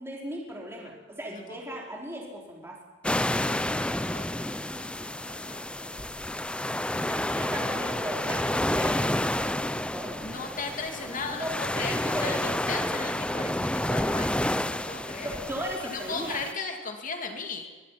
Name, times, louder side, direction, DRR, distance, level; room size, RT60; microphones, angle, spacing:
voice 1, 0.0-2.8 7.0-10.2 11.3-12.5 15.2-16.4, equal, 10° right, -3 dB, 4.9 m, -37 dB
sound 1, 3.0-16.5, left 1 dB, 5° left, 0.6 m, -30 dB
voice 2, 3.1-6.1 6.9-7.5 10.2-13.6 13.9-15.4 15.9-17.7, left 4 dB, 40° left, 3 dB, 2.5 m, -37 dB
23.0 x 21.5 x 5.9 m, 1.3 s
head